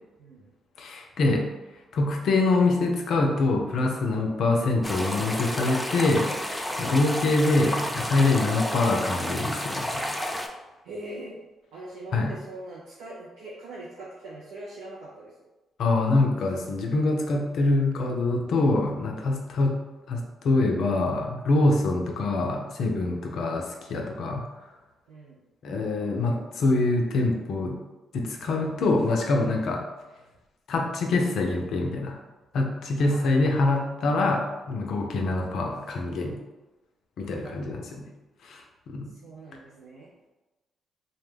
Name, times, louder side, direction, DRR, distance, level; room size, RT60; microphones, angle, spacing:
voice 1, 0.2-0.5 4.2-4.4 10.8-11.4 11.7-15.3 23.3-23.5 25.1-25.4 33.0-33.5 37.4-37.9 39.1-40.1, right 2 dB, 85° right, -5 dB, 0.4 m, -42 dB
voice 2, 0.8-1.5 1.9-6.3 6.8-10.1 12.1-12.3 15.8-19.8 20.1-24.4 25.6-27.8 28.1-29.9 30.7-32.2 32.5-36.4 37.2-38.1 38.4-39.1, left 2 dB, 70° left, 1 dB, 0.4 m, -25 dB
sound 1, 4.8-10.5, left 1 dB, 10° left, 0.4 m, -31 dB
2.2 x 2.1 x 3.2 m, 1.1 s
supercardioid pair, 55°, 0 cm